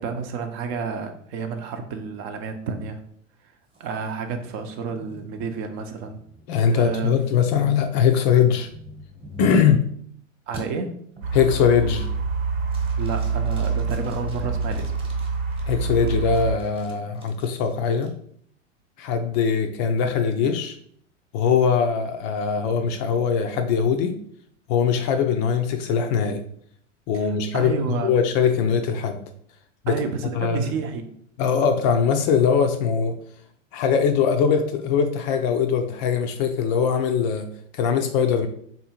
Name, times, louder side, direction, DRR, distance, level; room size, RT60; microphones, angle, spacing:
voice 1, 0.0-3.0 3.8-6.2 6.7-7.1 10.5-10.9 13.0-14.9 27.1-28.1 29.9-31.1, right 5 dB, 45° right, 6 dB, 0.7 m, -30 dB
sound 1, 3.7-10.1 10.5-10.6 11.2-11.5 11.9-12.3 12.7-15.6 16.1-18.1, equal, 15° right, 1.1 m, -45 dB
voice 2, 6.5-8.7 9.4-9.8 11.3-12.1 15.7-18.1 19.0-20.8 21.3-24.2 24.7-26.4 27.1-29.2 29.8-29.9 30.3-30.7 31.4-33.2 33.7-37.5 37.7-38.5, left 6 dB, 40° left, 7 dB, 0.4 m, -21 dB
sound 2, 11.2-16.6, right 4 dB, 80° right, 1.0 m, -26 dB
3.6 x 2.7 x 4.3 m, 0.64 s
hypercardioid pair, 105°, 38 cm